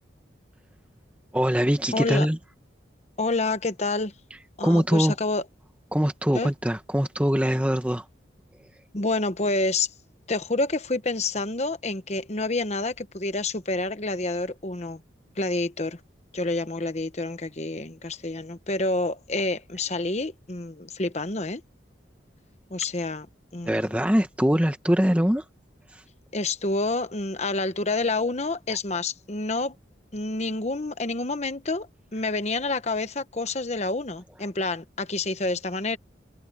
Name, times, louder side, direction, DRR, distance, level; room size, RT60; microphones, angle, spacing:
voice 1, 1.3-2.4 4.6-5.1 5.9-8.1 23.6-25.4 25.9-26.0, equal, 5° right, 1.0 m, -23 dB
voice 2, 1.9-2.3 3.2-4.1 4.6-5.4 6.3-6.5 8.9-9.9 10.3-15.0 15.4-16.0 16.3-21.6 22.7-23.3 23.5-23.9 26.3-29.7 30.1-36.0, left 2 dB, 35° left, 1.1 m, -28 dB
open air
head